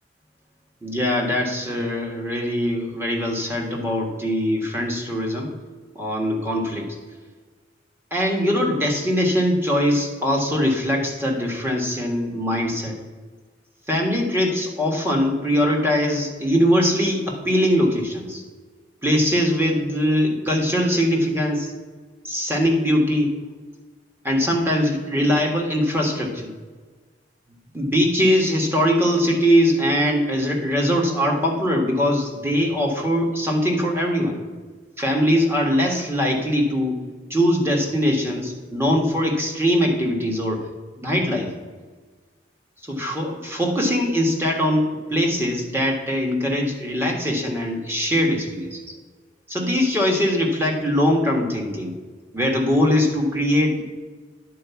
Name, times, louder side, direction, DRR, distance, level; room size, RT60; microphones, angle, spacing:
voice 1, 0.8-5.5 5.9-6.9 8.1-13.0 13.9-18.4 19.0-21.7 22.2-23.3 24.2-26.5 27.7-34.4 35.0-37.0 37.3-40.7 41.0-41.5 42.8-48.8 49.5-51.9 52.3-53.8, equal, 10° right, 0 dB, 1.5 m, -21 dB
10.0 x 4.6 x 7.0 m, 1.4 s
head